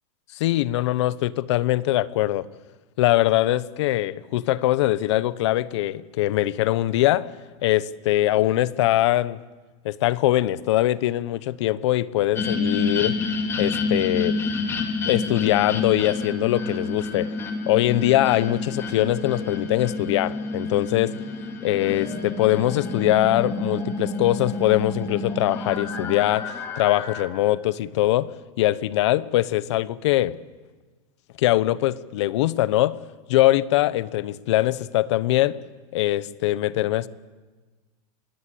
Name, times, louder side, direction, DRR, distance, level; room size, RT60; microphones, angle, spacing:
voice 1, 0.4-2.5 3.0-7.3 7.6-9.4 9.8-13.2 13.6-14.4 15.1-17.3 17.7-21.1 21.6-30.4 31.4-33.0 33.3-35.5 35.9-37.1, left 15 dB, 55° left, 17 dB, 1.0 m, -22 dB
sound 1, 12.4-27.2, left 3 dB, 15° left, 2.6 m, -29 dB
27.0 x 21.0 x 8.6 m, 1.3 s
supercardioid pair, 170°, 17 cm